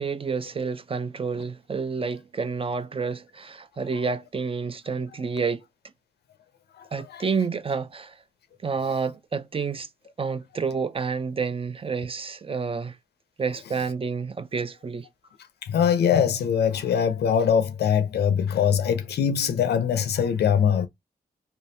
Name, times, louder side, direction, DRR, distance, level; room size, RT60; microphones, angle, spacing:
voice 1, 0.0-5.7 6.9-8.2 8.6-9.9 10.2-13.0 13.4-15.1, right 5 dB, 35° right, 0.4 m, -29 dB
voice 2, 15.7-20.9, left 8 dB, 85° left, 0.5 m, -22 dB
3.3 x 2.2 x 2.7 m
cardioid pair, 50°, 16 cm